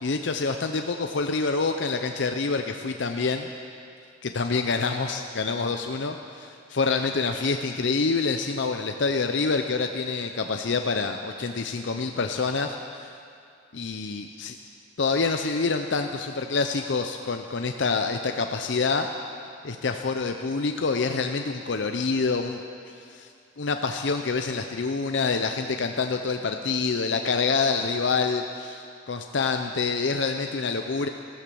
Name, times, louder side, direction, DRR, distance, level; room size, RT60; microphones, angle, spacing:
voice 1, 0.0-3.5 4.2-13.1 13.7-14.6 15.0-19.1 19.6-22.6 23.1-23.3 23.6-31.1, left 4 dB, 65° left, 5 dB, 0.6 m, -27 dB
14.5 x 13.5 x 6.9 m, 2.5 s
head